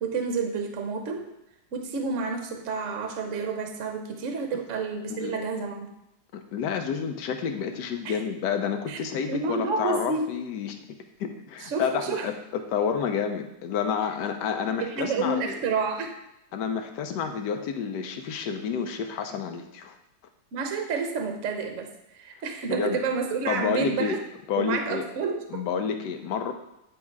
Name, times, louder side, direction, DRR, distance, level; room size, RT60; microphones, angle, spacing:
voice 1, 0.0-1.3 1.7-5.9 8.0-8.2 8.9-9.0 9.3-10.3 11.6-12.3 14.8-16.1 20.5-24.2 24.6-25.4, right 4 dB, 55° right, 4 dB, 0.9 m, -29 dB
voice 2, 6.3-10.8 11.2-12.3 12.7-15.6 16.5-19.9 22.7-23.0 23.5-24.2 24.5-25.1 25.5-26.5, left 7 dB, 70° left, 6 dB, 1.1 m, -29 dB
9.5 x 3.2 x 4.6 m, 0.85 s
omnidirectional pair, 2.3 m